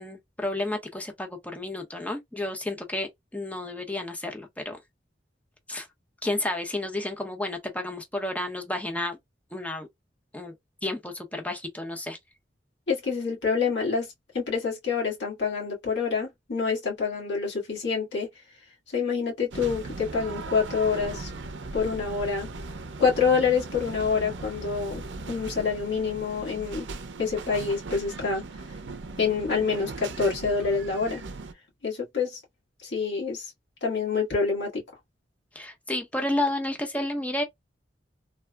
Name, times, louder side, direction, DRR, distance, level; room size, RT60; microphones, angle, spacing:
voice 1, 0.0-4.8 5.7-5.9 6.2-9.2 9.5-9.9 10.3-10.5 10.8-12.2 35.5-37.4, left 1 dB, 10° left, 0.7 m, -31 dB
voice 2, 12.9-14.1 14.3-18.3 18.9-21.3 21.7-22.5 23.0-25.0 25.3-26.9 27.2-28.4 29.2-31.2 31.8-32.4 32.8-33.5 33.8-34.8, left 5 dB, 70° left, 1.5 m, -27 dB
sound 1, 19.5-31.5, right 3 dB, 80° right, 0.5 m, -38 dB
3.3 x 2.0 x 2.2 m
head